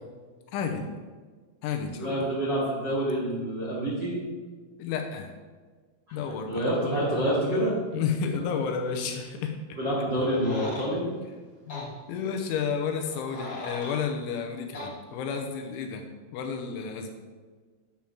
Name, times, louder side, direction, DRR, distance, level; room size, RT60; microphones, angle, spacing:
voice 1, 0.5-0.9 1.6-2.3 4.8-5.3 6.1-6.7 7.9-9.8 11.7-16.1 16.3-17.2, left 6 dB, 85° left, 4 dB, 3.0 m, -31 dB
voice 2, 2.0-4.2 6.5-7.7 9.7-11.1, equal, 85° right, -8 dB, 1.0 m, -27 dB
sound 1, 10.2-10.9 11.7-11.9 13.0-14.0 14.7-14.9, left 2 dB, 35° left, 2.2 m, -38 dB
10.5 x 7.2 x 3.0 m, 1.4 s
omnidirectional pair, 5.7 m